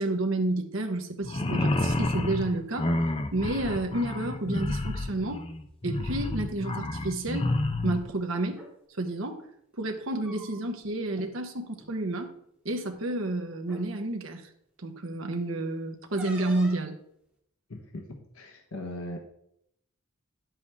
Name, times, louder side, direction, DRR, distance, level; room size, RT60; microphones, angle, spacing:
voice 1, 0.0-3.0 3.3-5.4 5.8-7.5 7.8-8.6 9.0-9.5 9.8-12.3 12.6-14.5 14.8-17.0, right 2 dB, 70° right, 4 dB, 1.1 m, -30 dB
sound 1, 1.2-8.0, left 2 dB, 25° left, 0.6 m, -29 dB
sound 2, 8.4-8.7 10.0-10.9 11.1-11.3 11.7-11.9 12.9-13.0 13.6-13.9 16.2-16.9, right 1 dB, 5° right, 2.0 m, -46 dB
voice 2, 17.7-19.2, left 1 dB, 90° left, 2 dB, 1.2 m, -39 dB
9.7 x 7.5 x 3.5 m, 0.73 s
head